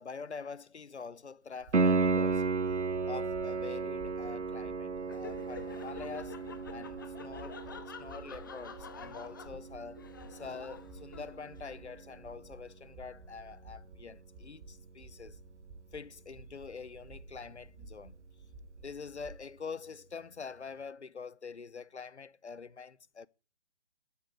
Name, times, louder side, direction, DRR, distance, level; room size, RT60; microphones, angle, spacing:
voice 1, 0.0-2.5 3.1-6.4 6.7-15.4 15.9-18.2 18.8-23.3, left 5 dB, 75° left, 0.8 m, -45 dB
Piano, 1.7-12.4 15.7-15.8, right 4 dB, 85° right, 0.8 m, -34 dB
sound 1, 3.7-19.4, right 3 dB, 25° right, 1.7 m, -53 dB
Laughter, 5.0-11.6, left 6 dB, 20° left, 0.6 m, -49 dB
9.8 x 8.6 x 9.4 m
figure-of-eight pair, 140°, 34 cm